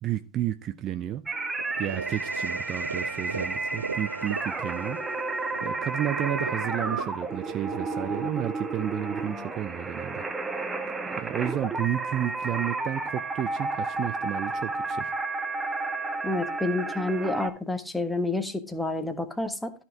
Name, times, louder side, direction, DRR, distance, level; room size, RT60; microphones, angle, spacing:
voice 1, 0.0-1.2 1.8-5.0 5.6-10.3 11.1-15.1, right 12 dB, 30° right, 0.6 m, -32 dB
sound 1, 1.3-17.5, right 3 dB, 10° right, 1.3 m, -32 dB
sound 2, 1.6-9.6, right 4 dB, 75° right, 0.7 m, -38 dB
voice 2, 16.2-19.7, left 2 dB, 5° left, 1.3 m, -29 dB
13.0 x 5.9 x 4.7 m
figure-of-eight pair, 90°, 0 cm